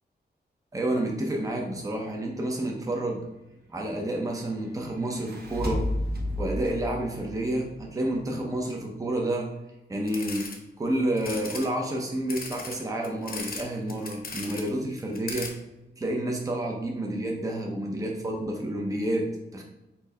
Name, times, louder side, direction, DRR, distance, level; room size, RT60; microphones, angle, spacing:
voice 1, 0.7-3.2 3.7-5.9 6.4-9.5 9.9-10.5 10.8-15.5 16.0-19.6, right 1 dB, 20° right, 0 dB, 0.6 m, -29 dB
sound 1, 5.0-8.4, left 1 dB, 65° right, 1.0 m, -32 dB
sound 2, 10.1-10.6 11.2-11.7 12.3-13.6 13.9-14.7 15.0-15.5, left 3 dB, 60° left, 0.7 m, -37 dB
4.3 x 2.7 x 4.1 m, 0.97 s
wide cardioid pair, 125°, 18 cm